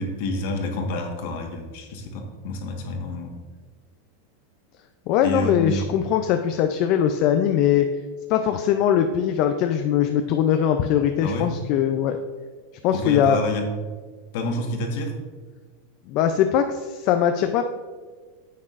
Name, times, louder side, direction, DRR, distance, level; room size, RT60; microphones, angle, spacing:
voice 1, 0.0-3.3 5.2-5.9 11.2-11.5 12.9-13.6 14.3-15.2, left 2 dB, 60° left, 3 dB, 1.3 m, -28 dB
voice 2, 5.1-7.9 8.3-12.2 12.8-13.4 16.1-17.6, left 9 dB, 45° left, 6 dB, 0.4 m, -21 dB
9.6 x 7.3 x 2.5 m, 1.4 s
supercardioid pair, 150°, 0 cm